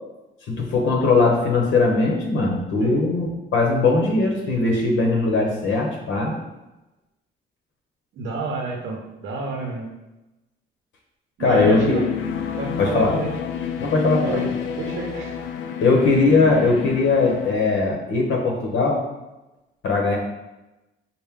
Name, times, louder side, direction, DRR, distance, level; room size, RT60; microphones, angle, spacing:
voice 1, 0.5-6.4 11.4-12.0 12.8-13.2 13.8-14.5 15.8-19.0 19.8-20.2, left 3 dB, 70° left, 0 dB, 0.8 m, -20 dB
voice 2, 8.2-9.9 11.4-12.1 12.6-13.3 14.2-14.5 14.8-15.4, right 3 dB, 75° right, 0 dB, 0.7 m, -29 dB
sound 1, 11.5-17.5, left 8 dB, 90° left, 0.4 m, -29 dB
4.4 x 2.1 x 3.6 m, 1.0 s
cardioid pair, 90°, 20 cm